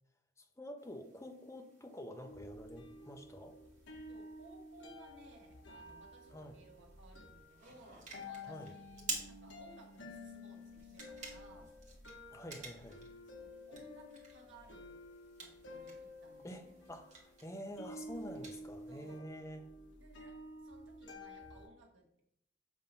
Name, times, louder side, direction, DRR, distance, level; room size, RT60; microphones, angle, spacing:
voice 1, 0.4-3.6 6.3-6.5 8.4-8.7 12.3-13.0 16.4-16.6 16.9-19.6, equal, 15° left, 4 dB, 0.6 m, -48 dB
sound 1, 0.8-19.2, right 4 dB, 40° right, 1.3 m, -52 dB
sound 2, 2.2-21.7, left 1 dB, 65° left, 1.1 m, -52 dB
voice 2, 4.1-11.7 13.3-15.0 15.4-16.7 18.9-19.3 20.0-22.2, right 2 dB, 75° right, 1 dB, 1.3 m, -60 dB
7.2 x 2.7 x 5.4 m, 0.72 s
head